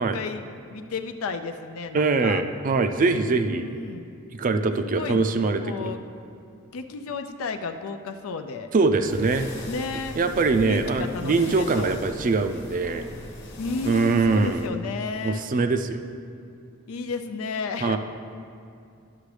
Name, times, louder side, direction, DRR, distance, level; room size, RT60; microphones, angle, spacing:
voice 1, 0.0-2.4 3.4-4.1 4.8-5.2 5.6-6.0 6.7-8.7 9.7-10.2 10.6-12.0 13.6-15.5 16.9-18.0, left 4 dB, 90° left, 7 dB, 0.4 m, -33 dB
voice 2, 1.9-3.7 4.3-5.9 8.7-9.5 10.2-13.0 13.8-14.7 15.2-16.0 17.8-18.0, right 3 dB, 40° right, 8 dB, 0.4 m, -23 dB
sound 1, 9.0-14.7, left 1 dB, 60° left, 1.1 m, -40 dB
11.5 x 6.0 x 3.3 m, 2.4 s
head